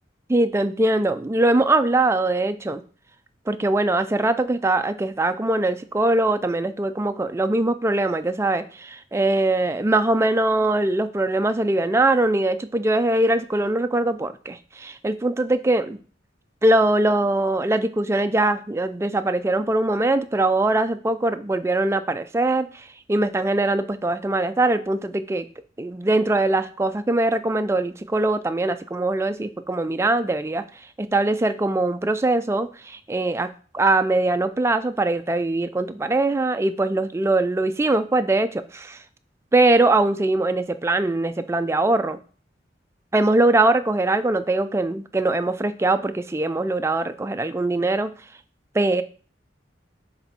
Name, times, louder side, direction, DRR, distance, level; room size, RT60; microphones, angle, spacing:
voice 1, 0.3-2.8 3.5-16.0 16.6-25.5 25.8-30.6 31.0-33.5 33.7-39.0 39.5-42.2 43.1-48.1 48.7-49.0, right 2 dB, 15° right, 10 dB, 0.3 m, -22 dB
7.1 x 3.4 x 4.1 m, 0.41 s
head